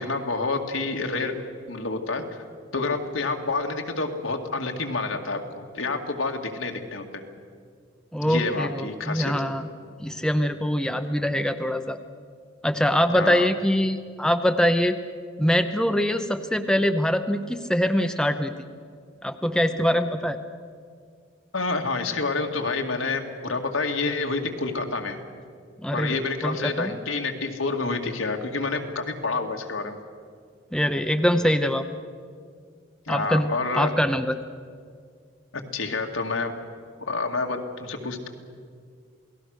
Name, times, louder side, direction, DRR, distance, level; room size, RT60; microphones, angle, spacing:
voice 1, 0.0-1.3 1.7-2.4 2.7-7.2 8.2-9.3 13.1-13.5 21.5-25.2 25.9-30.0 33.1-33.9 35.7-36.5 37.0-38.3, left 3 dB, 85° left, 3 dB, 2.2 m, -28 dB
voice 2, 8.1-9.7 10.0-12.0 12.6-15.0 15.4-18.5 19.2-20.4 25.8-27.0 30.7-31.9 33.1-33.5 33.7-34.4, equal, 5° left, 7 dB, 0.7 m, -23 dB
28.0 x 19.0 x 6.5 m, 2.1 s
head